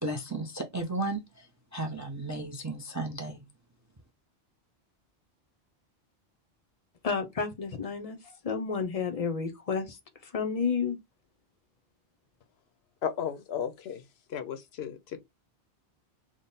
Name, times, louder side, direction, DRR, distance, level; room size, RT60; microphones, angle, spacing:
voice 1, 0.0-1.5 1.7-3.4, right 2 dB, 25° right, 0.4 m, -34 dB
voice 2, 7.0-11.0, left 5 dB, 40° left, 0.6 m, -31 dB
voice 3, 13.0-14.0 14.3-15.0, left 8 dB, 70° left, 0.8 m, -34 dB
3.7 x 2.1 x 3.9 m
omnidirectional pair, 1.1 m